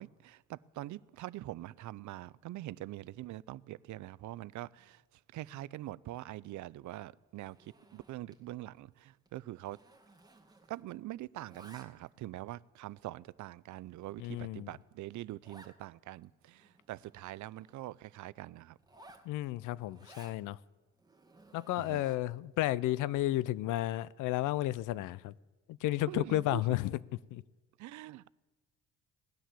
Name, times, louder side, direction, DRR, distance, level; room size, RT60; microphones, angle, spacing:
voice 1, 0.0-5.0 5.3-9.8 10.7-18.8 21.8-22.0 26.1-26.8 27.8-28.2, right 16 dB, 75° right, 0.5 m, -44 dB
Zipper (clothing), 7.4-8.5 8.8-9.0 9.3-10.9 11.2-12.2 12.8-12.9 13.5-13.6 14.0-14.1 14.4-14.5 14.7-14.8 15.4-15.8 16.2-16.3 16.5-17.8 18.8-20.4 21.0-22.4, right 2 dB, 15° right, 2.0 m, -58 dB
voice 2, 14.2-14.7 19.3-20.6 21.5-25.3 25.7-27.0 27.3-27.4, left 15 dB, 90° left, 0.5 m, -32 dB
17.5 x 10.0 x 7.5 m
cardioid pair, 90°, 30 cm